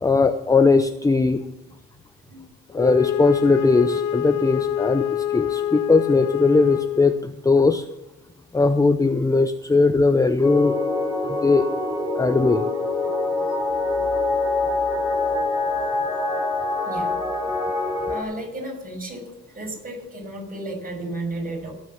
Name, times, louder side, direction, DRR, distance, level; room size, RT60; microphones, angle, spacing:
voice 1, 0.0-1.4 2.7-7.8 8.5-10.8 11.3-11.7 12.2-12.6, left 3 dB, 10° left, 9 dB, 0.6 m, -19 dB
Wind instrument woodwind instrument, 2.7-7.3, left 11 dB, 80° left, 0.6 m, -26 dB
sound 1, 10.4-18.2, left 3 dB, 10° right, 4.3 m, -25 dB
voice 2, 18.1-19.3 19.5-21.7, right 1 dB, 30° right, 0 dB, 6.7 m, -33 dB
18.5 x 6.4 x 7.2 m, 0.94 s
cardioid pair, 90°, 30 cm